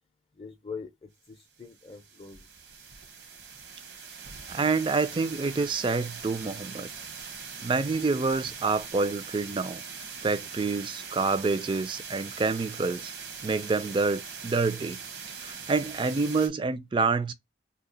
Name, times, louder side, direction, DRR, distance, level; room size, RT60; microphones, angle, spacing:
voice 1, 0.4-2.5, left 5 dB, 30° left, 0.5 m, -43 dB
sound 1, 1.5-16.5, right 6 dB, 80° right, 0.9 m, -41 dB
voice 2, 4.5-6.9 7.6-9.8 10.2-13.1 13.4-15.0 15.4-17.3, right 4 dB, 25° right, 0.3 m, -27 dB
2.8 x 2.3 x 3.9 m
head